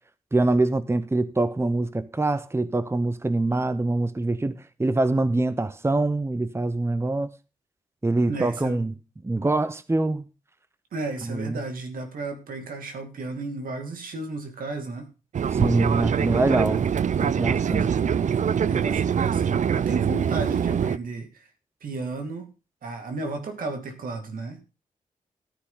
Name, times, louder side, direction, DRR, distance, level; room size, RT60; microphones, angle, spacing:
voice 1, 0.3-7.3 8.0-8.9 9.2-10.3 11.2-11.6 15.5-16.9 17.2-17.9, right 2 dB, 20° right, 0.8 m, -24 dB
voice 2, 8.3-8.8 10.9-15.1 17.6-18.1 18.7-21.5 21.8-22.5 22.8-24.6, right 3 dB, 80° right, 2.5 m, -33 dB
Fixed-wing aircraft airplane, 15.3-21.0, right 8 dB, 60° right, 0.5 m, -24 dB
14.5 x 9.9 x 3.9 m
cardioid pair, 60°, 14 cm